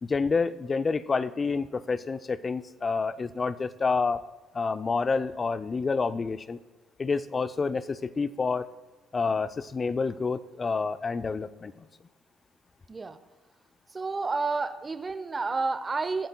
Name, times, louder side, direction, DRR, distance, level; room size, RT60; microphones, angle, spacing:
voice 1, 0.0-4.2 4.5-6.6 7.0-8.7 9.1-11.8, left 4 dB, 30° left, 14 dB, 0.5 m, -28 dB
voice 2, 12.9-13.2 13.9-16.3, right 3 dB, 25° right, 12 dB, 0.8 m, -30 dB
23.0 x 8.8 x 2.3 m, 1.3 s
figure-of-eight pair, 50°, 0 cm